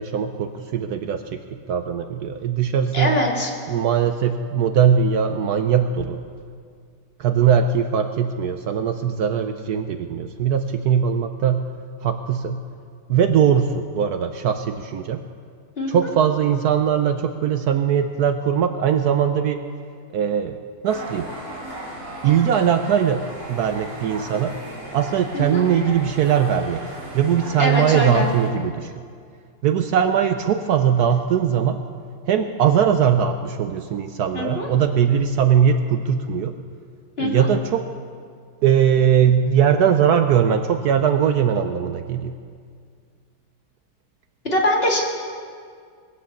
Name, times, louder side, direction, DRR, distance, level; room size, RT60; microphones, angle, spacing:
voice 1, 0.0-3.2 3.7-6.2 7.2-11.7 12.0-12.6 13.1-15.2 15.9-19.6 20.1-20.6 20.8-21.3 22.2-24.6 24.9-26.8 27.1-28.9 29.6-31.8 32.3-36.5 37.2-37.9 38.6-42.3, right 8 dB, 70° right, 8 dB, 1.1 m, -20 dB
voice 2, 2.9-3.5 15.8-15.9 25.3-25.6 27.6-28.3 34.3-34.7 37.2-37.5 44.4-45.0, left 1 dB, 35° left, -2 dB, 2.2 m, -22 dB
sound 1, 20.8-28.5, right 1 dB, 55° right, 4.0 m, -36 dB
20.0 x 8.4 x 7.2 m, 2.1 s
omnidirectional pair, 1.9 m